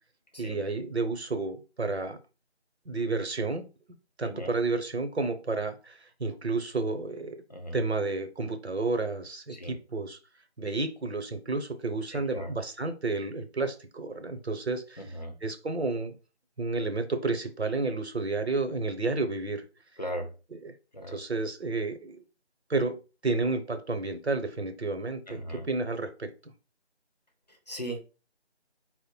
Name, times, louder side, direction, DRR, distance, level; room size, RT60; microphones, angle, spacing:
voice 1, 0.4-2.2 2.8-3.7 4.2-7.4 7.7-10.2 10.6-15.0 15.4-16.2 16.6-19.6 20.6-20.7 21.1-22.2 22.7-26.5, right 3 dB, 65° right, 0.9 m, -31 dB
voice 2, 4.2-4.5 7.5-7.8 9.5-9.8 12.1-12.5 15.0-15.4 20.0-20.3 20.9-21.4 25.3-25.7 27.5-28.0, equal, 35° left, 0.8 m, -38 dB
4.8 x 2.1 x 4.4 m
figure-of-eight pair, 170°, 34 cm